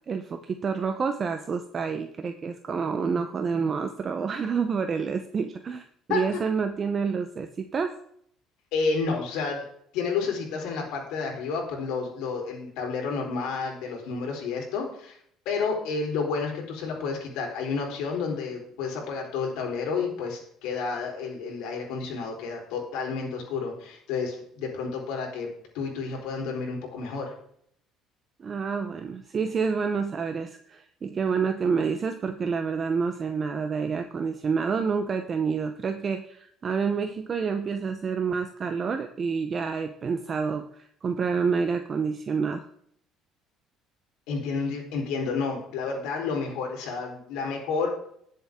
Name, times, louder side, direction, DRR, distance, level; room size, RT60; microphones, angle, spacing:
voice 1, 0.1-7.9 28.4-42.7, right 5 dB, 25° right, 7 dB, 0.7 m, -28 dB
voice 2, 8.7-9.7 9.9-15.2 15.5-25.5 25.7-27.3 44.3-47.9, left 5 dB, 75° left, 0 dB, 3.8 m, -30 dB
19.0 x 7.4 x 3.6 m, 0.65 s
cardioid pair, 170°, 0 cm